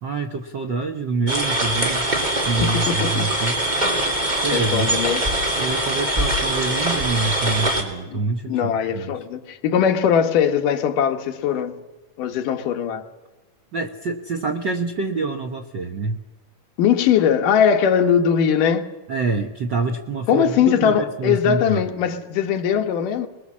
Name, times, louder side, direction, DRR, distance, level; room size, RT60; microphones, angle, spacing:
voice 1, 0.0-2.1 2.4-3.6 4.3-4.9 5.6-9.2 13.7-16.2 19.1-21.8, right 3 dB, 65° right, 1.1 m, -26 dB
sound 1, 1.3-7.8, right 1 dB, 15° right, 2.6 m, -22 dB
voice 2, 2.6-3.3 4.5-5.2 8.1-8.2 8.5-11.8 12.2-13.0 16.8-18.9 20.3-23.3, left 8 dB, 80° left, 2.9 m, -20 dB
23.0 x 21.5 x 7.4 m
omnidirectional pair, 3.7 m